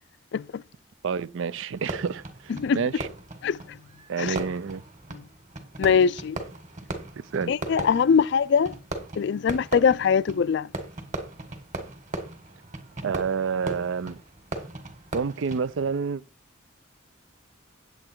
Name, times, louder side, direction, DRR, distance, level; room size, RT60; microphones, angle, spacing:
voice 1, 0.3-0.6 2.5-2.8 3.4-3.8 4.2-4.4 5.1-5.2 5.8-6.4 7.5-8.8 9.2-10.7, left 6 dB, 60° left, 0.4 m, -22 dB
voice 2, 1.0-3.1 4.1-4.8 7.2-7.5 13.0-14.2 15.1-16.2, right 6 dB, 75° right, 0.4 m, -29 dB
Fireworks, 1.7-16.0, right 2 dB, 40° right, 1.9 m, -38 dB
8.6 x 8.2 x 4.5 m
head